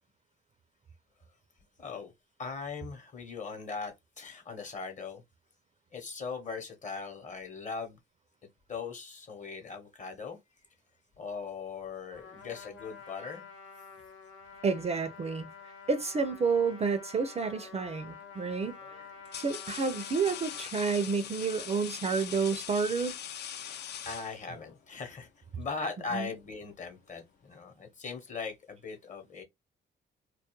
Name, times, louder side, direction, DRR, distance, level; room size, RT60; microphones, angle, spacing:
voice 1, 1.8-2.1 2.4-5.2 5.9-8.0 8.7-10.4 11.2-13.4 23.4-23.8 24.0-29.4, left 4 dB, 40° left, 0.9 m, -40 dB
Trumpet, 12.1-20.7, left 5 dB, 85° left, 0.8 m, -49 dB
voice 2, 14.6-15.5 15.9-18.8 19.3-23.1 26.1-26.3, right 5 dB, 35° right, 0.4 m, -30 dB
sound 1, 17.7-18.0 18.8-24.8, left 9 dB, 60° left, 0.4 m, -42 dB
2.3 x 2.0 x 2.9 m
cardioid pair, 90°, 20 cm